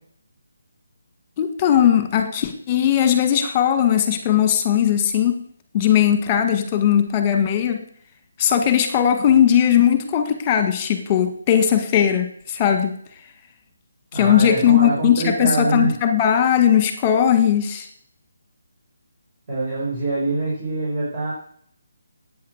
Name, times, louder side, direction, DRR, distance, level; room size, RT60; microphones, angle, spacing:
voice 1, 1.4-5.4 5.7-7.8 8.4-12.9 14.1-17.9, left 9 dB, 20° left, 8 dB, 1.9 m, -18 dB
voice 2, 14.1-15.9 19.5-21.3, right 2 dB, 25° right, -7 dB, 5.2 m, -24 dB
10.5 x 9.0 x 8.1 m, 0.62 s
hypercardioid pair, 165°, 0 cm